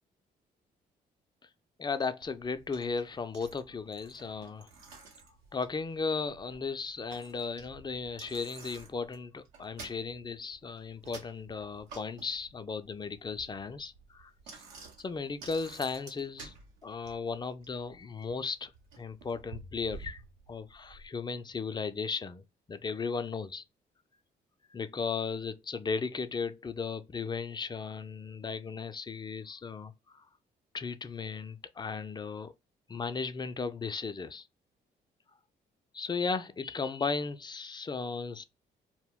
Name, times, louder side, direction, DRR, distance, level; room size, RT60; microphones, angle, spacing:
voice 1, 1.8-4.7 5.5-14.3 15.0-16.6 16.8-18.7 19.0-20.2 20.5-22.4 22.7-23.6 24.7-30.2 30.7-32.5 32.9-34.5 35.9-38.4, left 4 dB, 20° left, 0.4 m, -36 dB
Bicycle, 2.2-21.1, right 4 dB, 90° right, 0.7 m, -52 dB
2.1 x 2.1 x 3.5 m
hypercardioid pair, 50°, 21 cm